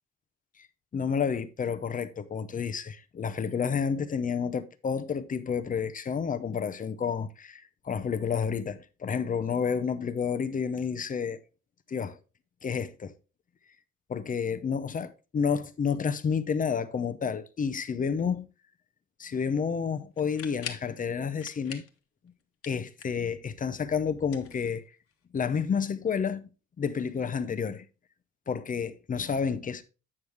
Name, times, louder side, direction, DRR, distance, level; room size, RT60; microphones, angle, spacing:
voice 1, 0.9-11.4 11.9-12.2 12.6-13.1 14.1-18.5 19.2-21.8 22.7-24.8 25.3-26.5 26.8-27.8 28.5-29.8, left 6 dB, 25° left, 0.5 m, -30 dB
sound 1, 20.2-20.9 21.4-22.0 22.3-23.3 24.2-25.1, left 7 dB, 45° left, 1.1 m, -43 dB
8.6 x 6.3 x 3.3 m
cardioid pair, 150°, 31 cm